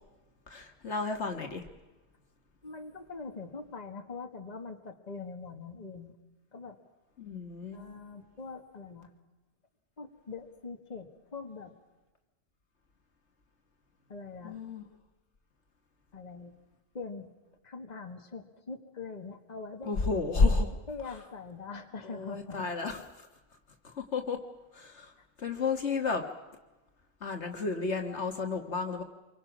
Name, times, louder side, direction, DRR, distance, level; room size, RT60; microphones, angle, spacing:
voice 1, 0.5-1.6 7.2-7.8 14.4-14.8 19.8-20.7 22.0-23.0 23.8-24.4 24.7-25.1 25.4-26.2 27.2-29.0, left 4 dB, 60° left, 5 dB, 1.9 m, -31 dB
voice 2, 2.6-6.1 6.5-6.8 7.7-9.1 10.0-11.7 14.1-14.6 16.1-16.5 16.9-17.3 17.6-19.9 20.9-22.7, left 4 dB, 35° left, 4 dB, 1.7 m, -43 dB
27.5 x 24.0 x 6.2 m, 1.1 s
omnidirectional pair, 1.3 m